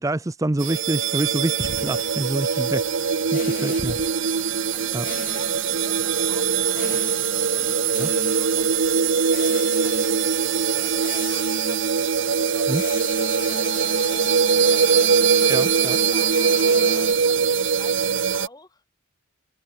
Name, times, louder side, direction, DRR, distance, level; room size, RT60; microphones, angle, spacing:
voice 1, 0.0-2.8 3.3-3.9 4.9-5.0 8.0-8.1 12.7-12.8 15.5-16.0, right 1 dB, 15° right, 0.5 m, -26 dB
sound 1, 0.6-2.2 3.3-4.2 5.0-5.6 6.7-7.3 7.9-8.6 9.3-10.4 11.0-12.1 12.7-17.1, left 5 dB, 40° left, 0.7 m, -36 dB
sound 2, 0.6-18.5, right 6 dB, 65° right, 0.7 m, -22 dB
voice 2, 3.6-15.2 15.9-18.8, left 2 dB, 20° left, 6.4 m, -48 dB
head